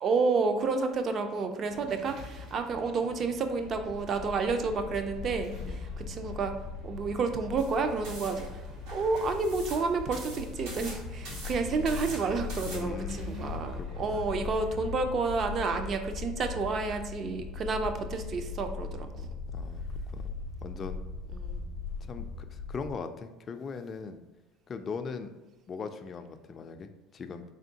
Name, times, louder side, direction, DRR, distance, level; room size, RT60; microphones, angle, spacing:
voice 1, 0.0-6.5 6.8-19.3 21.3-21.6, right 4 dB, 45° right, 7 dB, 0.5 m, -30 dB
sound 1, 1.7-15.5, equal, 60° right, 1.0 m, -50 dB
sound 2, 3.6-22.9, left 4 dB, 85° left, 0.6 m, -39 dB
sound 3, 7.6-12.8, right 2 dB, 85° right, 1.3 m, -45 dB
voice 2, 12.7-14.4 19.5-19.8 20.1-20.3 20.6-21.0 22.0-24.2 24.7-25.3 25.7-27.4, left 5 dB, 35° left, 7 dB, 0.3 m, -40 dB
3.7 x 3.4 x 2.7 m, 1.1 s
supercardioid pair, 95°, 0 cm